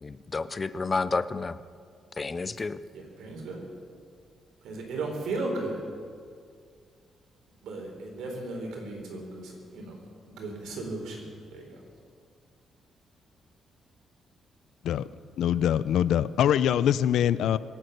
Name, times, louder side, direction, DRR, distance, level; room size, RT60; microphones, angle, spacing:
voice 1, 0.0-1.6 2.2-2.8, left 4 dB, 25° left, 15 dB, 0.4 m, -30 dB
voice 2, 2.9-3.7 4.6-5.8 7.6-10.0 10.2-11.8, right 2 dB, 90° right, 1 dB, 4.1 m, -36 dB
voice 3, 15.4-17.6, left 10 dB, 80° left, 17 dB, 0.5 m, -23 dB
24.5 x 8.8 x 6.7 m, 2.1 s
cardioid pair, 155°, 0 cm